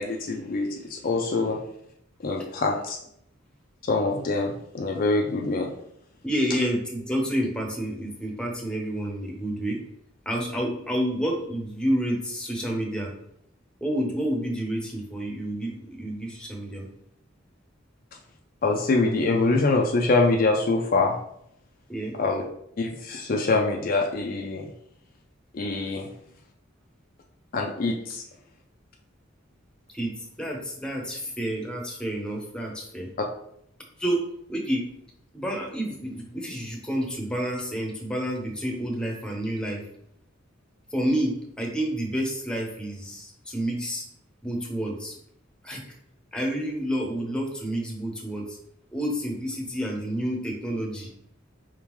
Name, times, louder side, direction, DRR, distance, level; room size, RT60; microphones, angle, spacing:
voice 1, 0.0-1.6 2.2-3.0 3.9-5.7 18.6-21.2 22.1-22.4 22.8-24.7 25.5-26.1 27.5-28.2, left 3 dB, 45° left, 1 dB, 0.4 m, -24 dB
voice 2, 6.2-9.8 10.3-13.1 13.8-16.9 21.9-22.1 29.9-30.1 30.4-33.1 34.0-34.2 34.5-34.8 35.3-39.8 40.9-44.0 44.4-45.1 45.6-45.8 46.3-48.6 48.9-51.1, equal, 5° left, 0 dB, 0.8 m, -29 dB
4.7 x 3.6 x 3.0 m, 0.74 s
head